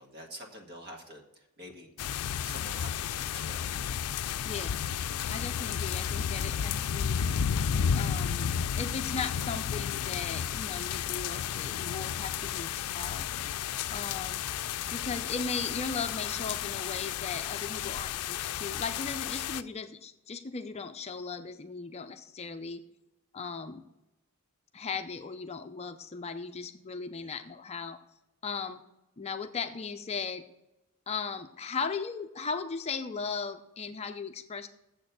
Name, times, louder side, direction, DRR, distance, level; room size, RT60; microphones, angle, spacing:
voice 1, 0.0-4.0 14.1-14.4 22.4-22.5 27.2-27.3, equal, 50° right, 2 dB, 1.8 m, -48 dB
sound 1, 2.0-19.6, left 8 dB, 90° left, 0.4 m, -32 dB
voice 2, 4.4-4.8 5.3-7.3 7.9-13.3 13.9-14.5 14.9-22.8 23.3-23.8 24.7-28.0 28.4-28.8 29.2-30.4 31.1-34.7, left 5 dB, 30° left, 7 dB, 0.5 m, -37 dB
7.4 x 6.6 x 8.0 m, 0.93 s
head